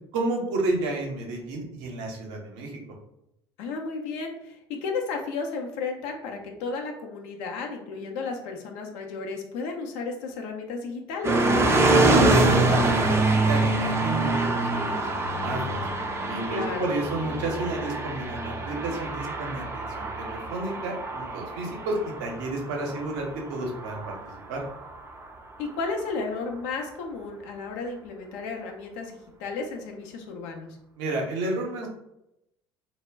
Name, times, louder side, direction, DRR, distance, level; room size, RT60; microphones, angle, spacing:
voice 1, 0.1-2.8 11.8-15.9 16.2-24.2 24.5-24.6 31.0-31.9, right 2 dB, 65° right, 1 dB, 0.7 m, -31 dB
voice 2, 3.6-11.5 16.5-16.9 25.6-30.8, left 4 dB, 60° left, 2 dB, 0.5 m, -33 dB
sound 1, 11.2-25.3, right 2 dB, 20° right, 0.4 m, -25 dB
2.2 x 2.0 x 3.3 m, 0.83 s
figure-of-eight pair, 60°, 13 cm